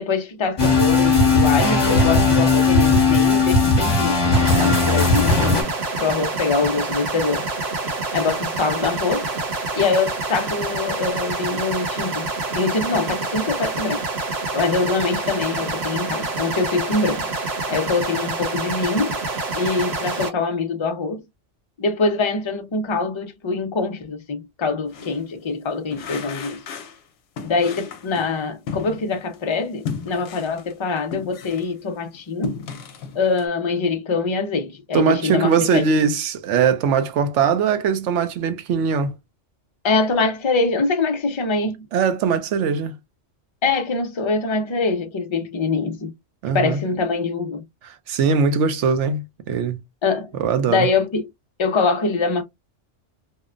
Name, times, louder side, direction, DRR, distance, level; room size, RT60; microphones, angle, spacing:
voice 1, 0.0-5.6 6.0-7.5 8.1-9.3 9.7-12.3 12.5-14.0 14.5-17.3 17.7-19.2 19.5-21.2 21.8-26.6 27.4-32.5 33.1-36.1 39.8-41.8 43.6-46.1 46.5-47.6 50.0-50.3 50.7-51.3 51.6-52.4, left 4 dB, 40° left, 0.4 m, -23 dB
sound 1, 0.6-5.6, left 3 dB, 25° left, 0.9 m, -17 dB
sound 2, 4.3-20.3, right 3 dB, 60° right, 1.2 m, -27 dB
sound 3, 24.9-25.2 25.9-27.0 27.4-29.4 29.9-31.8 32.1-33.5, left 5 dB, 65° left, 0.8 m, -34 dB
voice 2, 34.9-39.1 41.9-43.0 46.4-46.8 47.8-49.8 50.4-50.9, right 6 dB, 80° right, 0.9 m, -21 dB
2.8 x 2.1 x 2.4 m
omnidirectional pair, 1.2 m